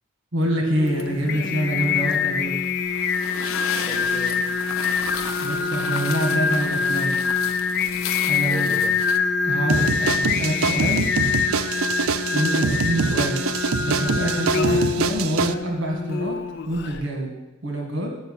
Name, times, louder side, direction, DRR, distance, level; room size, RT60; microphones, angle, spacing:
voice 1, 0.3-2.6 5.4-7.2 8.2-8.7 9.4-11.1 12.3-13.4 13.8-16.4 16.7-17.3 17.6-18.2, right 1 dB, 65° right, 1 dB, 1.5 m, -26 dB
Singing, 0.8-17.0, left 5 dB, 50° left, 0.5 m, -25 dB
sound 1, 0.9-9.2, left 7 dB, 90° left, 0.8 m, -34 dB
voice 2, 3.6-4.5 8.5-9.0 12.5-12.8 14.6-14.8, equal, ahead, -8 dB, 3.2 m, -38 dB
sound 2, 9.7-15.5, right 5 dB, 85° right, 0.5 m, -25 dB
10.5 x 5.6 x 8.3 m, 1.1 s
head